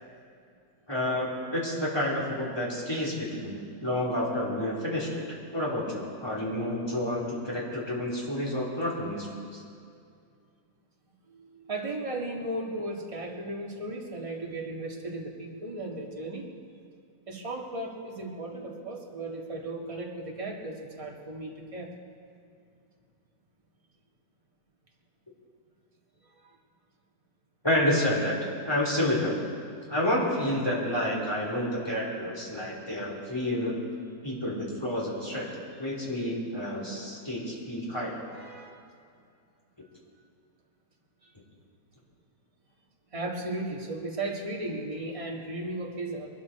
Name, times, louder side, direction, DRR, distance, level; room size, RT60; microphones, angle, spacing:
voice 1, 0.9-5.2 5.5-9.3 27.6-28.4 28.7-29.3 29.9-33.8 34.2-35.5 35.8-38.1, left 1 dB, 15° left, -4 dB, 3.2 m, -29 dB
voice 2, 11.3-16.4 17.3-21.9 35.7-35.9 38.3-38.8 41.2-41.3 43.1-46.3, right 2 dB, 20° right, -1 dB, 1.6 m, -36 dB
22.5 x 13.0 x 4.2 m, 2.3 s
omnidirectional pair, 1.9 m